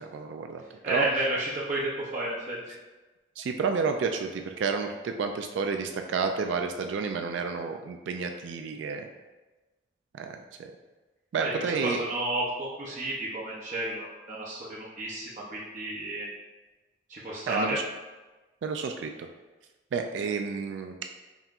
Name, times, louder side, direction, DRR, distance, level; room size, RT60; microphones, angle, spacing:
voice 1, 0.0-1.1 3.4-9.1 10.1-10.7 11.3-12.0 17.5-17.8 18.6-19.3 19.9-21.2, right 5 dB, 85° right, 5 dB, 0.3 m, -30 dB
voice 2, 0.8-2.6 11.4-16.3 17.1-17.8, right 1 dB, 40° right, -5 dB, 0.6 m, -31 dB
5.3 x 2.9 x 2.4 m, 1.2 s
head